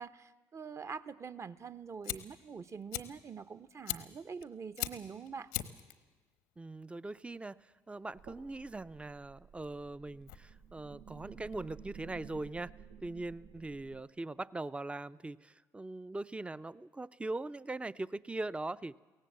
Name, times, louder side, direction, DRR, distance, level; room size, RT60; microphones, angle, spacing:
voice 1, 0.0-5.5, right 6 dB, 35° right, 12 dB, 0.9 m, -45 dB
Fire, 1.6-12.1, left 13 dB, 80° left, 1.0 m, -44 dB
voice 2, 6.6-7.6 7.9-12.7 13.0-19.0, right 2 dB, 15° right, 16 dB, 0.6 m, -41 dB
sound 1, 8.1-14.0, right 7 dB, 70° right, 1.2 m, -53 dB
23.0 x 17.5 x 7.5 m, 1.3 s
hypercardioid pair, 55°, 8 cm